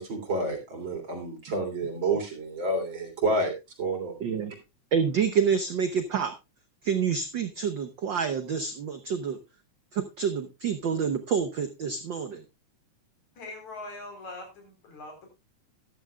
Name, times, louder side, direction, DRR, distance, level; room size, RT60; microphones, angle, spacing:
voice 1, 0.0-3.5 3.8-4.1, right 2 dB, 40° right, 4.0 m, -29 dB
voice 2, 4.2-4.5 4.9-6.3 6.8-9.4 9.9-12.4, right 6 dB, 70° right, 1.1 m, -28 dB
voice 3, 13.4-15.3, left 2 dB, 75° left, 5.3 m, -42 dB
14.0 x 12.5 x 2.3 m
omnidirectional pair, 3.3 m